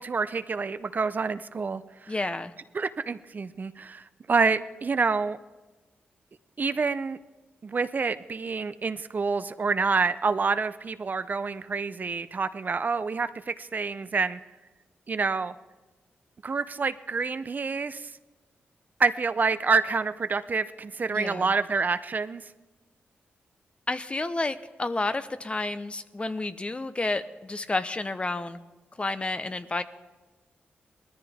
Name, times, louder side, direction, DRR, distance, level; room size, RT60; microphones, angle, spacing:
voice 1, 0.0-2.1 2.7-5.4 6.6-7.2 7.6-14.4 15.1-15.5 16.4-18.1 19.0-22.4, right 4 dB, 45° right, 12 dB, 0.6 m, -27 dB
voice 2, 2.1-2.5 21.1-21.5 23.9-28.6 29.0-29.8, left 2 dB, 30° left, 11 dB, 0.8 m, -30 dB
19.5 x 13.5 x 3.6 m, 1.2 s
cardioid pair, 65°, 4 cm